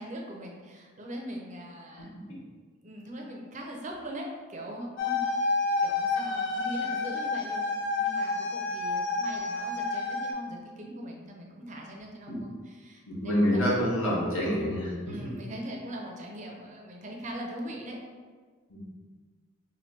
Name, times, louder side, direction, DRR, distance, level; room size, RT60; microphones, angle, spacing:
voice 1, 0.0-2.1 2.8-5.2 5.8-13.7 15.0-18.0, equal, 35° right, 0 dB, 0.5 m, -41 dB
sound 1, 5.0-10.3, left 3 dB, 55° left, 0.5 m, -29 dB
voice 2, 13.1-14.9 18.7-18.9, equal, 80° left, -5 dB, 1.2 m, -27 dB
2.8 x 2.6 x 4.3 m, 1.5 s
head